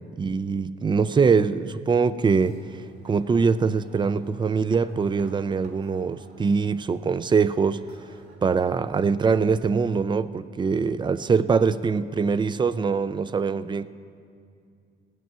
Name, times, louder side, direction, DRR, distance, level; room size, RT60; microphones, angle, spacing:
voice 1, 0.2-2.6 3.0-7.8 8.4-13.9, right 5 dB, 25° right, 0.4 m, -23 dB
sound 1, 2.4-8.4, right 2 dB, 55° right, 3.1 m, -53 dB
17.5 x 9.2 x 7.4 m
cardioid pair, 125°, 20 cm